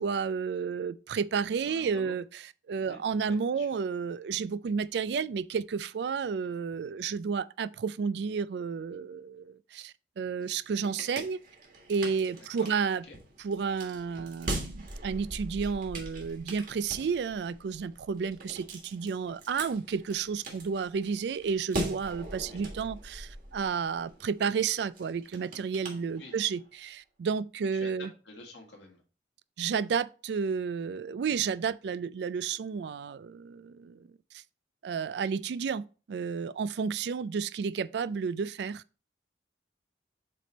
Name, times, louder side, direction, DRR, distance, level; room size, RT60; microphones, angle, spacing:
voice 1, 0.0-2.4 2.7-11.4 11.9-13.0 13.4-28.1 29.6-34.1 34.3-34.4 34.8-38.8, right 6 dB, 70° right, 0.3 m, -31 dB
voice 2, 1.6-2.2 2.8-3.7 12.6-12.7 13.1-13.2 22.4-22.6 26.2-26.4 27.7-29.0, left 2 dB, 85° left, 1.8 m, -48 dB
sound 1, 10.4-26.7, right 1 dB, 50° right, 1.6 m, -41 dB
7.6 x 3.4 x 4.0 m
head